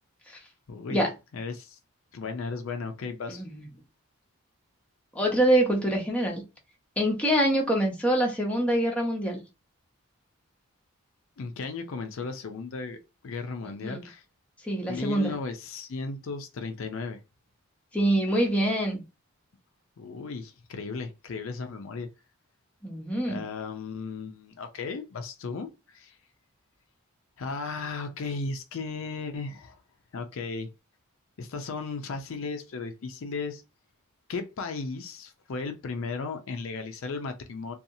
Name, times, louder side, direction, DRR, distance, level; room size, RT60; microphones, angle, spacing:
voice 1, 0.7-1.0 1.3-1.8 2.1-3.4 11.4-13.0 13.2-14.2 14.9-17.2 20.0-22.1 23.3-26.2 27.4-29.8 30.1-30.7 31.4-33.6 34.3-37.7, left 4 dB, 60° left, 0.4 m, -35 dB
voice 2, 5.1-6.4 7.0-9.4 13.6-14.0 14.6-15.3 17.9-19.0 22.8-23.4, right 1 dB, 5° left, 0.6 m, -25 dB
2.7 x 2.3 x 2.6 m
head